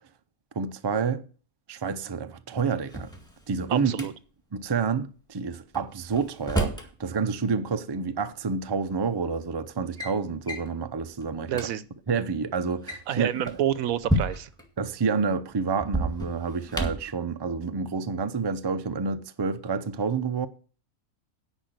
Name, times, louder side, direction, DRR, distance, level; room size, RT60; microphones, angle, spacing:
voice 1, 0.6-1.2 1.7-3.1 3.5-4.1 4.5-11.5 12.1-13.3 14.8-20.5, right 5 dB, 40° right, 0.3 m, -29 dB
Drawer open or close, 2.7-4.1 5.7-6.9 8.2-8.3 9.1-9.4 9.7-10.1 10.5-10.7 11.2-11.3 11.5-11.7 12.7-14.6 15.8-17.1, right 1 dB, 5° left, 1.9 m, -30 dB
voice 2, 3.7-4.1 11.5-11.9 13.1-14.5, right 11 dB, 80° right, 1.1 m, -28 dB
10.0 x 5.4 x 8.0 m
omnidirectional pair, 1.5 m